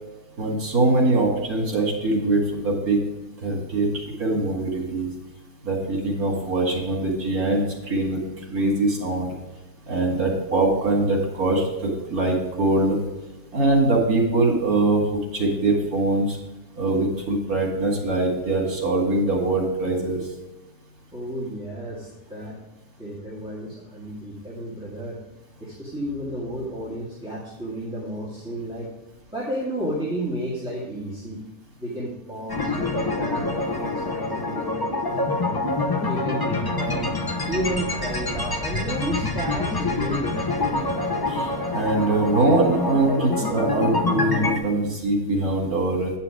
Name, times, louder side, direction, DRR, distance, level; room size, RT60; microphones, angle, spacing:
voice 1, 0.4-3.0 3.4-5.1 5.6-8.2 8.5-9.3 9.9-13.0 13.5-15.0 15.3-16.4 16.8-20.2 41.3-46.1, right 2 dB, 70° right, 0 dB, 2.7 m, -22 dB
voice 2, 21.1-22.6 23.0-25.2 25.6-28.9 29.3-31.4 31.8-35.6 36.0-37.2 37.5-40.4, right 1 dB, 5° right, -7 dB, 1.9 m, -32 dB
sound 1, 32.5-44.6, left 2 dB, 20° left, 0.7 m, -26 dB
9.8 x 5.7 x 4.9 m, 1.1 s
omnidirectional pair, 1.6 m